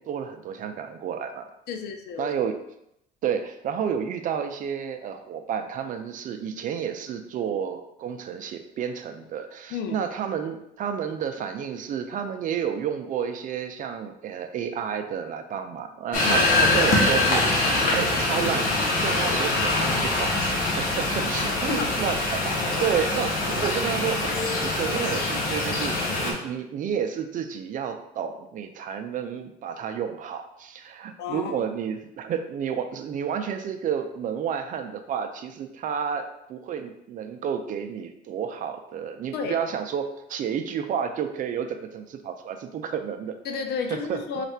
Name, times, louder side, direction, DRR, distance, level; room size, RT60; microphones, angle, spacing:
voice 1, 0.0-1.5 2.2-2.6 3.2-24.4 24.6-43.4 43.9-44.2, right 8 dB, 50° right, 7 dB, 0.5 m, -31 dB
voice 2, 1.7-2.3 9.7-10.0 16.2-16.5 21.4-21.9 31.2-31.5 39.3-39.6 43.4-44.4, left 5 dB, 75° left, 5 dB, 0.6 m, -31 dB
sound 1, 16.1-26.3, left 2 dB, 55° left, 1.1 m, -24 dB
3.2 x 2.5 x 4.3 m, 0.80 s
cardioid pair, 110°, 17 cm